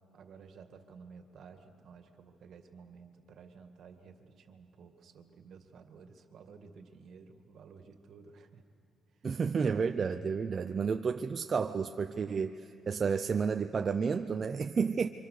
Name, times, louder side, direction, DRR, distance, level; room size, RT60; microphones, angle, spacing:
voice 1, 0.1-8.6 9.1-9.3, right 5 dB, 65° right, 6 dB, 2.1 m, -54 dB
voice 2, 9.2-15.1, right 5 dB, 40° right, 7 dB, 0.7 m, -31 dB
30.0 x 25.0 x 6.7 m, 2.5 s
cardioid pair, 90°, 0 cm